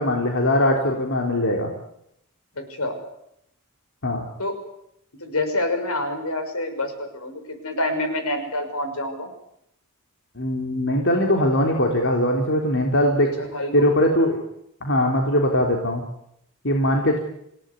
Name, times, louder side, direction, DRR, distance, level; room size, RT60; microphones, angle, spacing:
voice 1, 0.0-1.7 4.0-4.2 10.4-13.3 13.7-14.4 14.8-16.0 16.6-17.2, left 1 dB, 55° left, 1 dB, 3.8 m, -21 dB
voice 2, 2.6-3.0 4.4-4.5 5.2-9.3 13.4-13.9, left 1 dB, 80° left, 7 dB, 6.1 m, -27 dB
27.5 x 18.0 x 9.8 m, 0.76 s
head